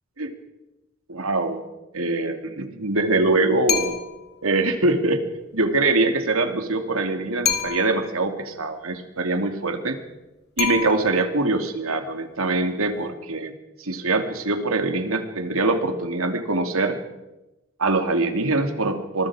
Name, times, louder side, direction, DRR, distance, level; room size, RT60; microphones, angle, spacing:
voice 1, 1.1-1.6 1.9-4.0 4.4-5.2 5.5-10.0 10.6-17.0 17.8-19.3, right 2 dB, 85° right, 6 dB, 2.6 m, -23 dB
sound 1, 3.7-4.3 7.4-8.1 10.6-11.4, left 9 dB, 55° left, 2.6 m, -27 dB
25.0 x 21.5 x 4.9 m, 0.99 s
head